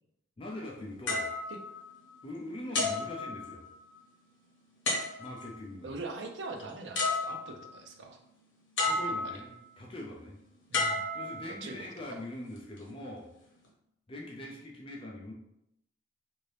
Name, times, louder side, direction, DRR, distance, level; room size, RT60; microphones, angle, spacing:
voice 1, 0.4-1.3 2.2-3.6 5.2-5.9 8.8-10.4 11.1-13.3 14.1-15.3, left 1 dB, 25° left, -2 dB, 0.4 m, -42 dB
sound 1, 1.1-2.3 2.7-3.9 4.9-5.6 6.6-6.7 7.0-7.8 8.8-9.6 10.7-11.8 12.6-12.8, left 2 dB, 70° left, 0.9 m, -32 dB
voice 2, 5.8-8.2 9.2-9.4 10.7-11.0 11.6-12.2, right 3 dB, 65° right, 4 dB, 0.5 m, -42 dB
2.7 x 2.6 x 3.3 m, 0.80 s
head